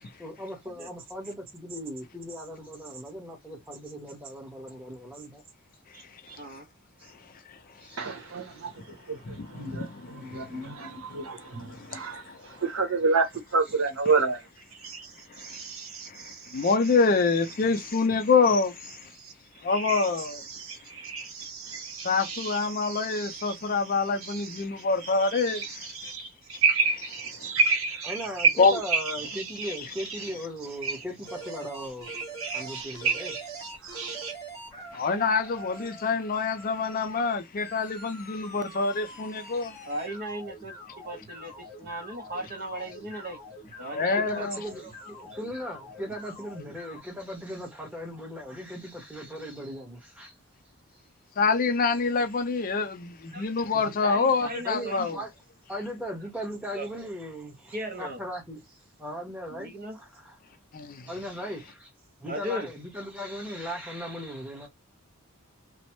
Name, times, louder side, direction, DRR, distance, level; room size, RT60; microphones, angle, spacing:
voice 1, 0.0-5.4 6.5-6.6 7.0-7.1 7.8-8.2 10.3-10.4 28.1-33.3 35.0-35.1 44.2-50.3 53.7-54.0 54.6-55.3 55.7-58.6 59.0-60.4 61.1-61.9 62.2-64.7, equal, 5° right, 1.1 m, -38 dB
voice 2, 5.9-6.7 27.4-27.5 35.8-35.9 39.8-40.7 41.0-43.4 43.8-44.5 44.8-44.9 53.3-53.5 54.0-55.2 56.7-56.9 57.7-58.2 59.5-60.0 62.3-62.7, right 1 dB, 45° right, 0.6 m, -37 dB
voice 3, 8.0-16.7 19.1-19.3 19.7-30.3 30.8-31.0 32.0-34.3, right 4 dB, 70° right, 0.9 m, -31 dB
voice 4, 9.3-10.5 11.1-11.2 11.7-12.6 15.3-15.6 16.1-19.1 19.6-20.4 22.0-26.2 28.6-28.8 29.6-29.7 34.9-39.8 43.9-44.6 51.4-55.2 60.7-61.1, left 4 dB, 40° left, 0.4 m, -26 dB
sound 1, 31.3-47.0, right 1 dB, 15° left, 0.9 m, -45 dB
3.0 x 2.0 x 2.9 m
head